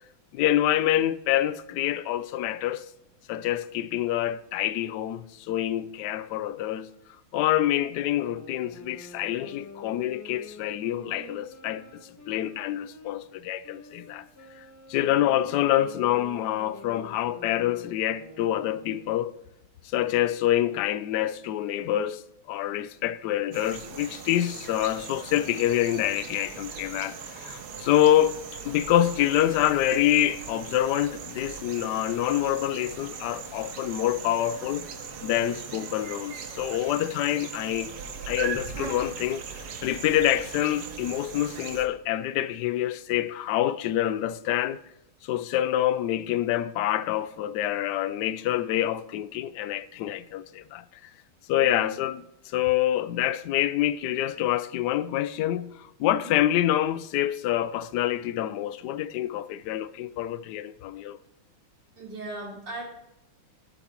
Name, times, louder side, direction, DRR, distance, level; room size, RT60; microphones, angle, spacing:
voice 1, 0.3-2.8 3.3-6.9 7.3-14.2 14.6-19.3 19.9-22.2 22.5-34.9 35.2-37.9 38.3-44.8 45.2-50.8 51.5-61.2, left 12 dB, 80° left, 0.9 m, -26 dB
sound 1, 7.9-13.1 13.6-19.2, equal, 15° left, 0.5 m, -47 dB
voice 2, 15.0-15.4 51.6-52.0 56.1-56.3 62.0-62.9, right 2 dB, 55° right, 3.8 m, -39 dB
sound 2, 23.5-41.9, right 6 dB, 90° right, 2.1 m, -39 dB
17.5 x 8.3 x 3.0 m
omnidirectional pair, 2.3 m